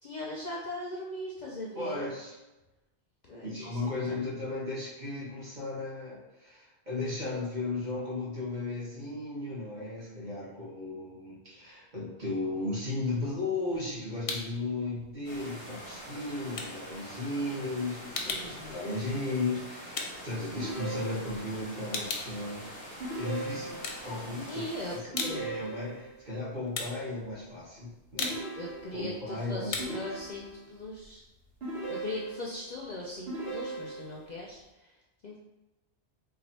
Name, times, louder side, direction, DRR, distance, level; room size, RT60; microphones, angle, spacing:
voice 1, 0.0-2.0 3.3-3.8 4.1-4.2 18.2-18.8 24.5-25.6 28.5-31.3 31.9-34.9 35.2-35.4, left 1 dB, 55° left, -3 dB, 0.5 m, -39 dB
voice 2, 1.7-2.3 3.4-22.7 23.1-24.6 25.1-28.4 28.9-30.0, left 2 dB, 45° right, -8 dB, 1.5 m, -35 dB
sound 1, 13.4-14.7 15.0-21.2 21.5-23.3 23.7-24.6 24.9-31.6, left 4 dB, 90° left, 0.9 m, -39 dB
sound 2, 15.2-25.0, equal, 5° left, 0.9 m, -45 dB
sound 3, 20.6-21.6 23.0-24.1 25.1-26.2 28.2-29.2 29.8-30.8 31.6-32.6 33.3-34.3, right 2 dB, 65° right, 1.2 m, -38 dB
3.2 x 2.4 x 4.0 m, 1.0 s
omnidirectional pair, 1.1 m